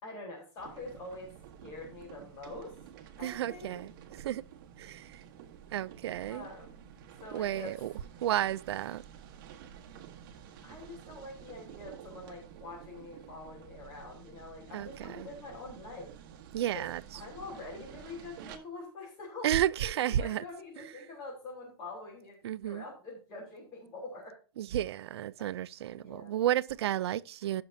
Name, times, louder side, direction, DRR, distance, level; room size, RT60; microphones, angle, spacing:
voice 1, 0.0-1.3 1.6-2.7 3.2-3.8 6.3-6.8 7.2-7.7 10.6-16.1 16.7-16.8 17.1-19.5 20.2-22.4 22.6-24.4 25.9-26.4, left 2 dB, 30° left, 3.9 m, -45 dB
sound 1, 0.6-18.6, right 9 dB, 50° right, 1.4 m, -51 dB
voice 2, 3.2-3.9 4.2-4.4 4.8-5.2 5.7-6.5 7.3-7.9 8.2-9.0 14.7-15.3 16.5-17.0 19.4-20.4 20.8-20.9 22.4-22.8 24.6-27.6, right 12 dB, 85° right, 0.6 m, -32 dB
17.0 x 6.0 x 2.8 m
supercardioid pair, 165°, 13 cm